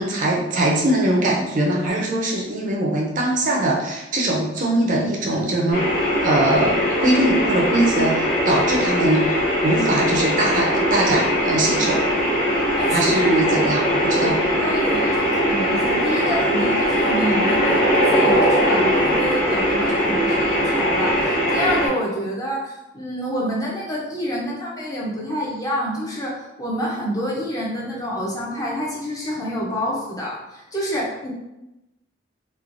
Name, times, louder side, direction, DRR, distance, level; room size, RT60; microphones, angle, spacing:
voice 1, 0.0-5.8 6.2-12.0 12.9-14.4, right 1 dB, 40° right, -2 dB, 0.4 m, -21 dB
sound 1, 5.7-21.9, equal, 45° left, 0.9 m, -20 dB
voice 2, 12.8-13.7 14.2-31.3, equal, 15° left, -4 dB, 0.4 m, -28 dB
3.1 x 2.1 x 2.4 m, 0.95 s
head